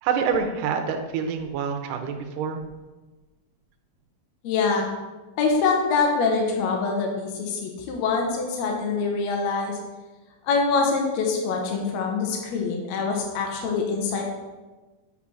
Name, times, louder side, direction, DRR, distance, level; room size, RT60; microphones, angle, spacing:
voice 1, 0.0-2.6, right 6 dB, 75° right, 4 dB, 2.3 m, -26 dB
voice 2, 4.4-4.9 5.4-9.8 10.4-14.2, left 4 dB, 70° left, 1 dB, 1.8 m, -24 dB
7.2 x 4.9 x 6.1 m, 1.2 s
omnidirectional pair, 4.1 m